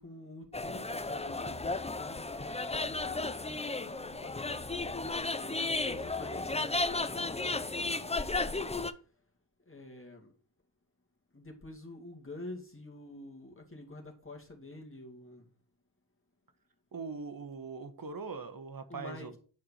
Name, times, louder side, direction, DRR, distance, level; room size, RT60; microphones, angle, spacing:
voice 1, 0.0-8.6 9.7-10.3 11.3-15.5 18.9-19.4, left 2 dB, 30° left, 2.3 m, -48 dB
sound 1, 0.5-8.9, left 3 dB, 15° left, 0.6 m, -34 dB
voice 2, 16.9-19.4, right 4 dB, 55° right, 1.2 m, -41 dB
9.5 x 4.8 x 6.3 m
cardioid pair, 55°, 42 cm